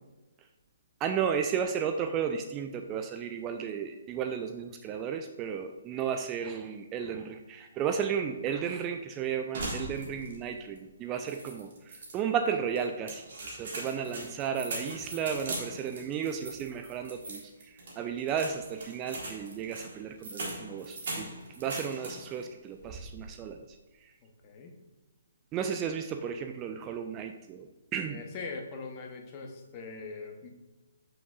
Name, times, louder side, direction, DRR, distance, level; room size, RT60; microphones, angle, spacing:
voice 1, 1.0-17.4 17.7-21.3 21.6-23.6 25.5-28.2, right 7 dB, 20° right, 6 dB, 0.3 m, -33 dB
sound 1, 9.5-10.5 10.8-10.9 11.3-12.2 12.8-22.4 22.8-23.3, right 2 dB, 55° right, 1.6 m, -40 dB
voice 2, 24.2-24.7 28.1-30.5, left 4 dB, 30° left, 2 dB, 1.0 m, -42 dB
7.0 x 5.8 x 2.4 m, 1.1 s
figure-of-eight pair, 130°, 0 cm